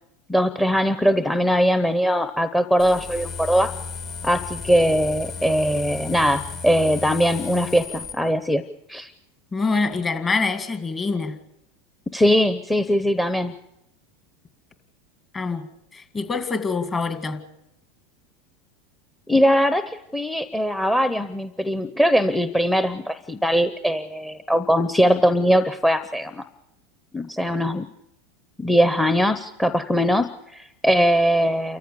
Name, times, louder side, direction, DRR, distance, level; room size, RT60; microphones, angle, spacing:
voice 1, 0.3-3.7 4.2-8.6 8.9-9.1 12.1-13.5 19.3-26.4 27.1-27.9 28.6-31.8, equal, 5° left, 0.8 m, -21 dB
sound 1, 2.8-8.1, left 5 dB, 45° left, 2.5 m, -34 dB
voice 2, 9.5-11.4 15.3-17.4, left 4 dB, 25° left, 2.1 m, -25 dB
28.5 x 14.5 x 6.9 m
hypercardioid pair, 100°, 0 cm